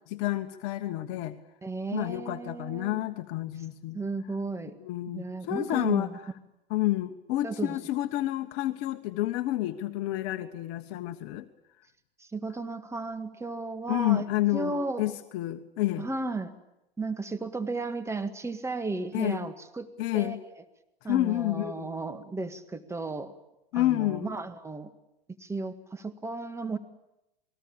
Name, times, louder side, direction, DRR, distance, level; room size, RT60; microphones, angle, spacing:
voice 1, 0.1-1.4 1.9-4.0 4.8-6.1 6.7-11.5 13.9-16.1 19.1-19.5 20.0-20.4 21.1-21.9 23.7-24.3, left 16 dB, 45° left, 8 dB, 1.4 m, -29 dB
voice 2, 1.6-3.1 3.9-4.8 5.1-6.2 7.4-7.8 12.2-14.3 14.5-15.1 16.0-16.5 17.0-19.9 20.1-20.4 21.0-23.3 23.7-24.9 25.4-26.8, right 3 dB, 10° right, 10 dB, 1.8 m, -34 dB
27.5 x 21.0 x 8.8 m, 0.87 s
hypercardioid pair, 100°, 31 cm